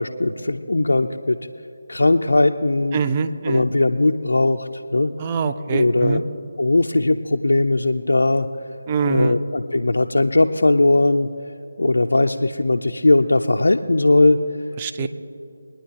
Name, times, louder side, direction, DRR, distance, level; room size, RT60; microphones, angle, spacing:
voice 1, 0.0-1.4 1.9-3.0 3.5-5.1 5.7-6.2 6.6-8.5 9.1-11.3 11.8-14.4 15.0-15.1, left 2 dB, 70° left, 4 dB, 0.4 m, -19 dB
voice 2, 2.9-3.7 5.2-6.2 8.9-9.4 14.8-15.1, right 5 dB, 25° right, 9 dB, 0.5 m, -23 dB
23.0 x 9.9 x 2.9 m, 2.6 s
figure-of-eight pair, 155°, 0 cm